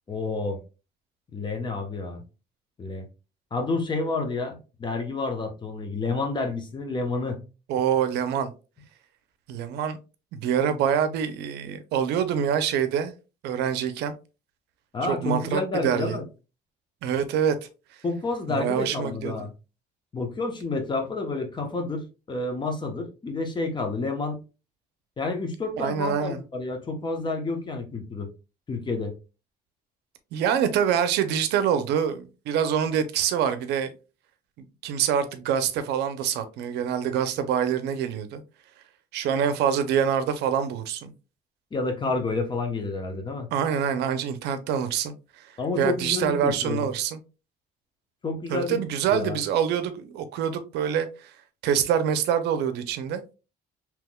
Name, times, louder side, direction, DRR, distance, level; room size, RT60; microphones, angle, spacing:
voice 1, 0.1-0.6 1.3-2.2 2.8-3.1 3.5-7.4 14.9-16.3 18.0-19.5 20.1-24.4 25.2-28.3 28.7-29.1 41.7-43.5 45.6-46.9 48.2-48.8 49.1-49.4, left 3 dB, 25° left, 0.8 m, -29 dB
voice 2, 7.7-8.5 9.5-10.0 10.3-13.1 13.4-14.1 15.1-16.2 17.0-17.6 18.5-19.3 25.8-26.4 30.3-33.9 34.6-38.4 39.1-41.1 43.5-45.1 45.8-47.2 48.5-51.3 51.6-53.2, right 8 dB, 80° right, 0.5 m, -25 dB
3.5 x 3.0 x 2.2 m
cardioid pair, 110°, 17 cm